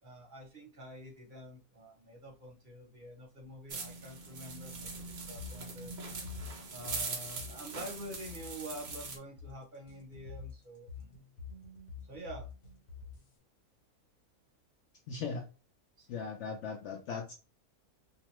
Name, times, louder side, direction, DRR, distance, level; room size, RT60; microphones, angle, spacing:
voice 1, 0.0-6.0 6.7-11.2 12.0-12.5 16.0-16.1, equal, 40° right, 0 dB, 0.8 m, -47 dB
sound 1, 3.7-9.2, right 4 dB, 65° right, 0.4 m, -42 dB
sound 2, 5.4-13.4, left 5 dB, 85° left, 1.4 m, -48 dB
voice 2, 15.1-15.4 16.1-17.3, left 5 dB, 65° left, 3 dB, 0.7 m, -38 dB
2.8 x 2.2 x 3.0 m, 0.32 s
omnidirectional pair, 1.6 m